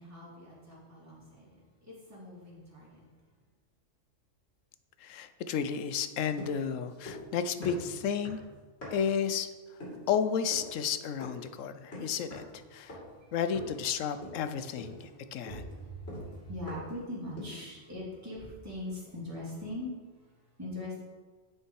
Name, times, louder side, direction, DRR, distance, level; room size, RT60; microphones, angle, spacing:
voice 1, 0.0-3.0 12.9-13.3 15.1-21.0, left 1 dB, 10° right, -8 dB, 2.8 m, -42 dB
voice 2, 5.0-8.4 8.9-9.5 10.1-13.0 13.3-15.7, left 7 dB, 85° left, 11 dB, 1.0 m, -32 dB
sound 1, 6.4-7.3 7.6-9.2 9.8-10.1 10.5-10.8 11.2-11.5 11.9-12.6 12.9-13.2 13.5-13.9 14.2-14.5 14.8-17.0 17.4-17.7, left 1 dB, 55° left, 3.0 m, -44 dB
9.5 x 5.6 x 4.7 m, 1.4 s
omnidirectional pair, 1.3 m